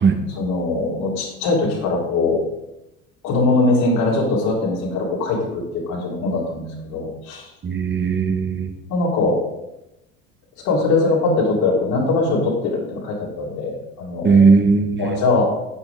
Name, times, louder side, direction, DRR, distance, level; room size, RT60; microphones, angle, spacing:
voice 1, 0.4-2.4 3.2-7.5 8.9-9.4 10.6-14.5 15.0-15.5, left 3 dB, 60° left, -4 dB, 4.1 m, -21 dB
voice 2, 7.6-8.7 14.2-15.2, right 5 dB, 25° right, 6 dB, 1.7 m, -17 dB
11.0 x 9.0 x 3.8 m, 0.91 s
figure-of-eight pair, 65°, 41 cm